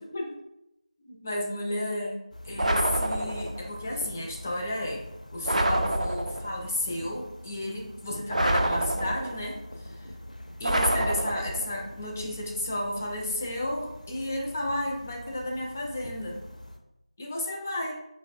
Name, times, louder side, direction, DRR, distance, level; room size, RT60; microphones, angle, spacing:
voice 1, 1.0-2.2 2.4-5.0 5.3-10.1 10.6-16.4 17.2-18.0, left 1 dB, 20° left, 0 dB, 0.3 m, -32 dB
sound 1, 2.3-16.8, left 1 dB, 85° left, 0.5 m, -44 dB
sound 2, 2.6-3.7 5.4-6.6 8.3-9.5 10.6-11.8, right 1 dB, 75° right, 0.4 m, -27 dB
4.8 x 2.0 x 2.5 m, 0.85 s
figure-of-eight pair, 165°, 4 cm